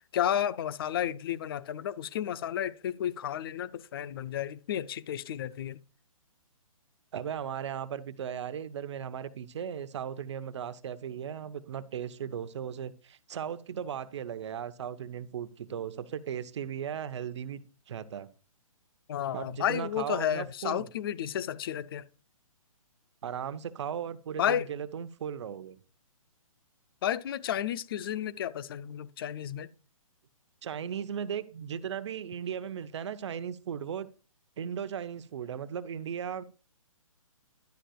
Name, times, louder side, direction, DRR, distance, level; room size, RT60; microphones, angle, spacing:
voice 1, 0.1-5.8 19.1-22.0 24.4-24.6 27.0-29.7, left 10 dB, 40° left, 0.6 m, -32 dB
voice 2, 7.1-18.3 19.3-20.9 23.2-25.8 30.6-34.1 34.6-36.4, right 8 dB, 50° right, 0.9 m, -37 dB
11.5 x 9.9 x 2.3 m
figure-of-eight pair, 135°, 18 cm